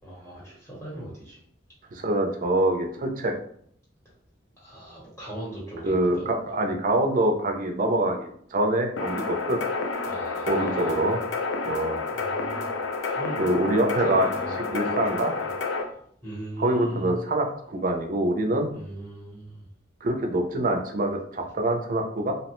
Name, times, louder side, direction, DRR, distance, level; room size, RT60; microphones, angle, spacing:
voice 1, 0.0-1.4 4.6-6.2 10.1-11.1 12.3-12.6 13.0-13.4 14.0-14.9 16.2-17.2 18.7-19.5, right 1 dB, 15° left, -7 dB, 0.9 m, -39 dB
voice 2, 1.9-3.3 5.8-9.6 10.5-11.2 11.7-12.0 13.4-15.3 16.6-18.7 20.0-22.3, right 1 dB, 45° right, 4 dB, 0.5 m, -25 dB
sound 1, 9.0-15.8, left 3 dB, 80° left, 0.4 m, -30 dB
2.8 x 2.1 x 2.9 m, 0.63 s
head